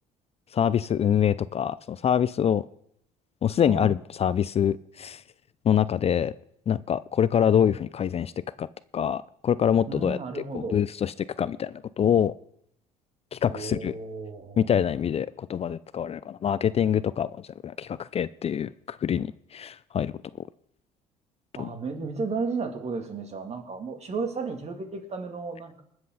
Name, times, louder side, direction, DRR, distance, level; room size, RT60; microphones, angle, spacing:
voice 1, 0.5-2.7 3.4-5.2 5.6-6.3 6.7-8.3 8.6-8.7 8.9-12.3 13.3-13.9 14.6-20.1 21.6-21.7, left 9 dB, 40° left, 18 dB, 0.5 m, -25 dB
voice 2, 3.6-3.9 9.9-10.8 13.5-14.6 21.5-25.8, right 4 dB, 40° right, 4 dB, 3.0 m, -33 dB
20.5 x 7.8 x 4.1 m, 0.70 s
hypercardioid pair, 65°, 16 cm